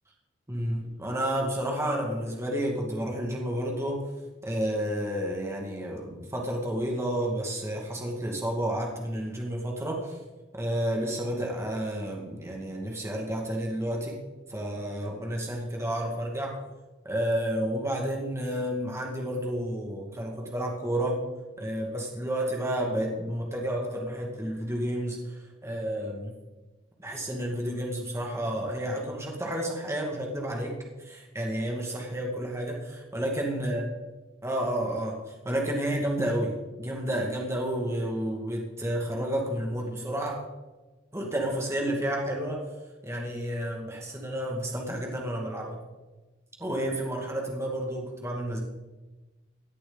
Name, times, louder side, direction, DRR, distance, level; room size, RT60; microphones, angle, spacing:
voice 1, 0.5-4.0 4.4-10.2 10.5-14.2 14.5-16.6 17.0-21.2 21.6-26.4 27.0-33.8 34.4-40.4 41.1-42.7 43.0-45.8 46.6-48.6, right 1 dB, 15° right, -1 dB, 2.2 m, -31 dB
17.5 x 11.0 x 4.1 m, 1.2 s
head